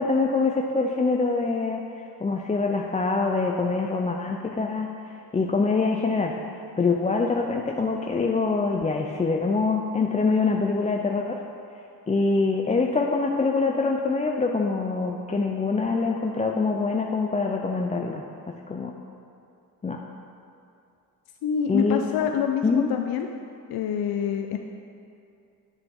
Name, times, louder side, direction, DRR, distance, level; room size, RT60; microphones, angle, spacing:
voice 1, 0.0-1.8 2.2-4.9 5.3-6.3 6.8-11.4 12.1-18.2 18.7-18.9 19.8-20.0 21.7-22.1 22.6-22.9, left 4 dB, 20° left, 1 dB, 0.4 m, -24 dB
voice 2, 21.4-23.3 23.7-24.6, left 8 dB, 65° left, 4 dB, 0.5 m, -26 dB
8.4 x 6.7 x 3.6 m, 2.5 s
cardioid pair, 75°, 39 cm